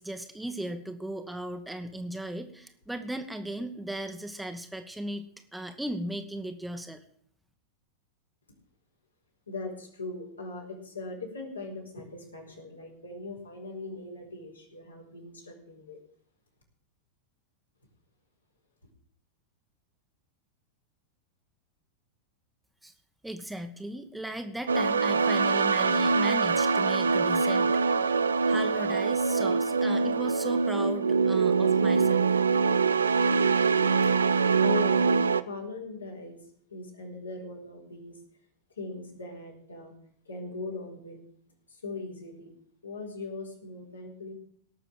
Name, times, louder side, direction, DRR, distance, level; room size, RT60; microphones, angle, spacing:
voice 1, 0.0-5.2 5.5-7.0 22.8-22.9 23.2-28.1 28.5-32.3, right 1 dB, 5° right, 6 dB, 1.3 m, -37 dB
voice 2, 9.5-16.0 34.0-34.1 34.6-36.4 36.7-38.2 38.8-39.9 40.2-41.2 41.7-42.5 42.8-44.3, left 3 dB, 80° left, -1 dB, 4.6 m, -40 dB
sound 1, 24.7-35.4, right 5 dB, 70° right, 0.6 m, -24 dB
18.0 x 6.7 x 7.6 m, 0.64 s
figure-of-eight pair, 90°, 0 cm